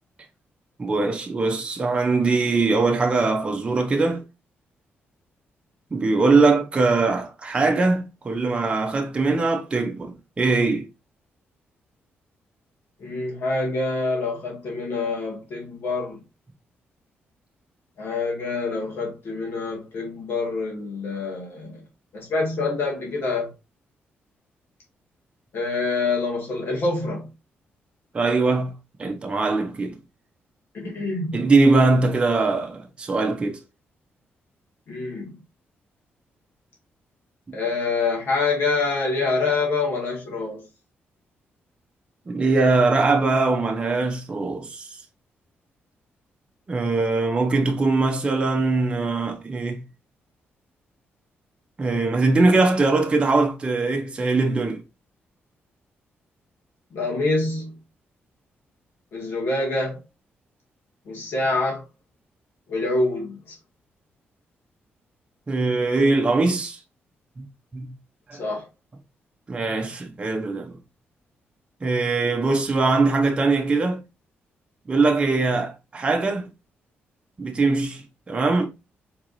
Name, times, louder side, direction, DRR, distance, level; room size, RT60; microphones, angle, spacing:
voice 1, 0.8-4.2 5.9-10.9 28.1-28.7 29.0-30.0 31.3-33.6 42.3-45.0 46.7-49.8 51.8-54.8 65.5-66.8 67.4-67.5 67.7-68.0 68.3-68.4 69.5-70.8 71.8-74.0 74.9-76.5 77.4-78.7, right 3 dB, 25° right, 0.7 m, -21 dB
voice 2, 13.0-16.2 18.0-21.8 22.1-23.5 25.5-27.2 30.7-31.5 34.9-35.3 37.5-40.6 56.9-57.7 59.1-60.0 61.1-61.8 62.7-63.4 68.4-68.6, left 3 dB, 60° left, 2.0 m, -26 dB
4.6 x 3.7 x 2.5 m
cardioid pair, 140°, 4 cm